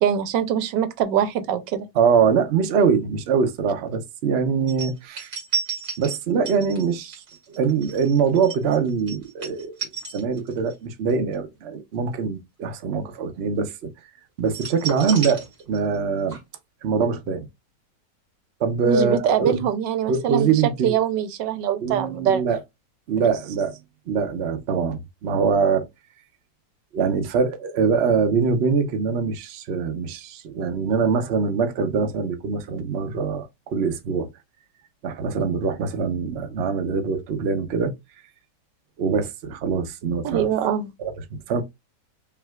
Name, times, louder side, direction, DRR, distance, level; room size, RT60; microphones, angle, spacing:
voice 1, 0.0-1.9 18.8-20.5 20.8-22.4 40.2-40.9, right 9 dB, 85° right, 1.3 m, -23 dB
voice 2, 1.9-5.3 6.0-7.2 7.5-9.7 10.1-13.9 14.4-16.4 16.8-17.5 18.6-19.6 20.1-21.0 21.8-22.6 23.1-23.8 24.1-25.9 26.9-34.3 35.0-37.9 39.0-40.5 41.0-41.6, right 5 dB, 60° right, 0.7 m, -23 dB
sound 1, 4.7-10.8 11.1-11.3 14.5-16.0 16.3-16.4, right 6 dB, 45° right, 2.1 m, -32 dB
5.6 x 2.7 x 2.3 m
omnidirectional pair, 1.9 m